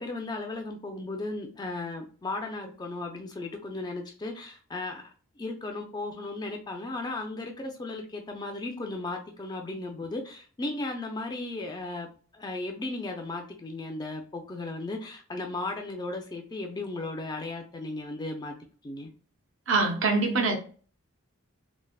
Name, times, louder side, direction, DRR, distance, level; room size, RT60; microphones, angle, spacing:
voice 1, 0.0-5.0 5.4-12.1 12.3-18.5 18.8-19.1, left 2 dB, 20° left, 3 dB, 0.3 m, -35 dB
voice 2, 19.7-20.6, right 3 dB, 60° right, 4 dB, 0.6 m, -24 dB
3.2 x 2.0 x 2.3 m, 0.40 s
head